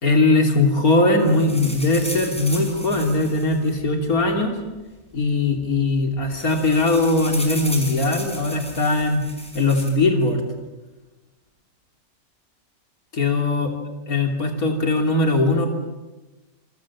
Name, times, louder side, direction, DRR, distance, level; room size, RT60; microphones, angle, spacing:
voice 1, 0.0-4.6 5.1-9.3 9.5-10.4 13.1-13.7 14.1-15.7, left 2 dB, 80° left, 4 dB, 3.6 m, -20 dB
sound 1, 1.2-4.4 5.2-5.3 5.6-5.8 6.1-9.9, equal, 5° left, 5.7 m, -35 dB
28.0 x 23.0 x 7.4 m, 1.1 s
omnidirectional pair, 1.5 m